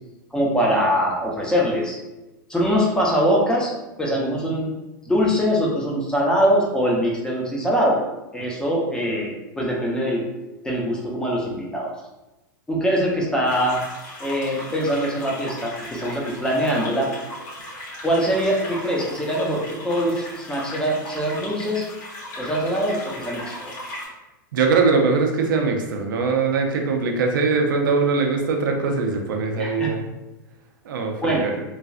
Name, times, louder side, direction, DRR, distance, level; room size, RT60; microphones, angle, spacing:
voice 1, 0.3-2.0 2.5-3.7 4.0-4.7 5.1-8.0 8.3-10.2 10.6-11.9 12.7-13.8 14.2-17.1 18.0-21.8 22.4-23.7 29.6-29.9 31.2-31.5, equal, 5° left, -3 dB, 0.7 m, -23 dB
sound 1, 13.4-24.0, left 1 dB, 65° left, 1.3 m, -37 dB
voice 2, 24.5-30.0 30.9-31.5, right 4 dB, 75° right, 3 dB, 0.6 m, -21 dB
3.2 x 2.4 x 2.4 m, 1.0 s
hypercardioid pair, 115°, 11 cm